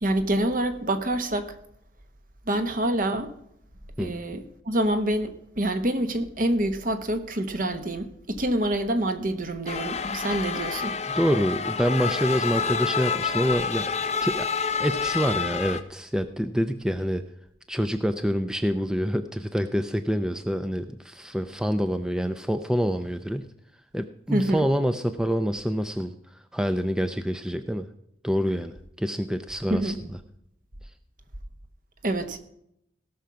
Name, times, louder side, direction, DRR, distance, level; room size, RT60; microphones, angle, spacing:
voice 1, 0.0-1.5 2.5-3.3 4.0-11.0 24.3-24.6 29.7-30.1 32.0-32.4, right 1 dB, 50° right, 1.2 m, -26 dB
sound 1, 9.7-15.8, left 5 dB, 35° left, 0.7 m, -28 dB
voice 2, 11.1-13.9 14.2-14.5 14.8-17.2 17.7-23.5 23.9-26.1 26.5-27.9 28.2-29.9, equal, 5° right, 0.4 m, -26 dB
17.0 x 6.3 x 5.8 m
head